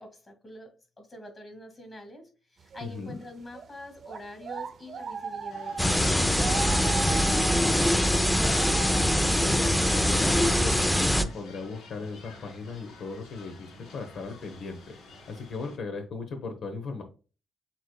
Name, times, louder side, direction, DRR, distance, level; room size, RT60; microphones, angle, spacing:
voice 1, 0.0-8.6, left 1 dB, 25° left, 1.9 m, -46 dB
sound 1, 2.7-3.0 3.5-11.1 11.4-11.7 12.8-12.9 13.2-13.6 14.2-14.5 15.1-15.2 15.5-15.6, right 6 dB, 55° right, 0.5 m, -38 dB
voice 2, 2.8-3.2 9.1-15.0 15.3-17.0, left 4 dB, 70° left, 0.9 m, -37 dB
sound 2, 5.5-15.8, left 4 dB, 85° left, 1.9 m, -50 dB
sound 3, 5.8-11.2, equal, 5° left, 0.5 m, -23 dB
7.1 x 3.0 x 2.2 m
cardioid pair, 90°, 0 cm